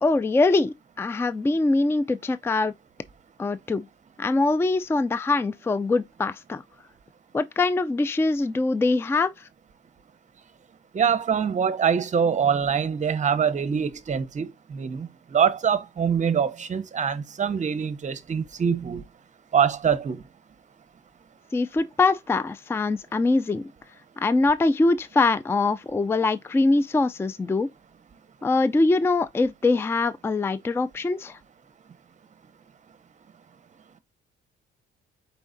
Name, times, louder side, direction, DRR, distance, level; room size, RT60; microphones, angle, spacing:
voice 1, 0.0-2.7 3.4-3.9 4.2-6.6 7.3-9.3 21.5-23.6 24.2-27.7 28.4-31.4, left 3 dB, 10° left, 0.3 m, -23 dB
voice 2, 10.9-19.0 19.5-20.2, right 7 dB, 40° right, 0.8 m, -24 dB
4.6 x 4.3 x 2.6 m
cardioid pair, 90°, 20 cm